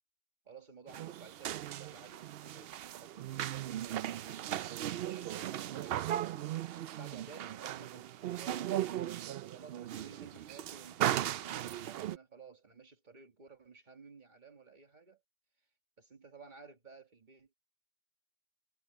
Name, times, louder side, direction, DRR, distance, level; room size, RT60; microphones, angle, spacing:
voice 1, 0.5-6.5 6.9-15.2 16.0-17.5, right 4 dB, 45° right, 1.9 m, -55 dB
sound 1, 0.9-12.2, right 12 dB, 70° right, 0.7 m, -37 dB
omnidirectional pair, 1.1 m